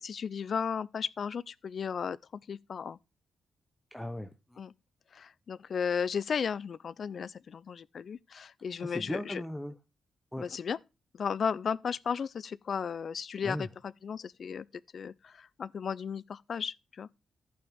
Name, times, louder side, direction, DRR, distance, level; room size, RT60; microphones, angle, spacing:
voice 1, 0.0-3.0 4.6-4.7 5.1-9.4 10.4-10.8 11.1-14.7 14.9-17.1, left 6 dB, 50° left, 0.4 m, -35 dB
voice 2, 3.9-4.6 8.8-9.7 10.3-10.5 13.4-13.7, left 1 dB, 5° left, 0.8 m, -37 dB
14.5 x 5.8 x 3.5 m
wide cardioid pair, 130°, 0 cm